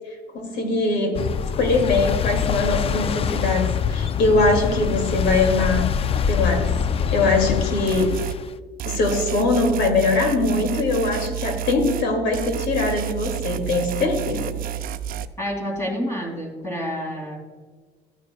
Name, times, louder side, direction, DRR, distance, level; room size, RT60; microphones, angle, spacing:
voice 1, 0.3-1.2 1.5-5.9 6.3-6.7 7.1-8.1 8.8-14.5, left 3 dB, 80° left, 4 dB, 2.5 m, -22 dB
sound 1, 1.2-8.6, left 7 dB, 35° left, 0.4 m, -24 dB
sound 2, 7.9-8.4 8.8-12.1 12.3-15.3, right 13 dB, 60° right, 0.5 m, -30 dB
voice 2, 15.4-17.4, equal, 15° left, -1 dB, 2.8 m, -28 dB
13.5 x 9.3 x 2.3 m, 1.5 s
cardioid pair, 110°, 17 cm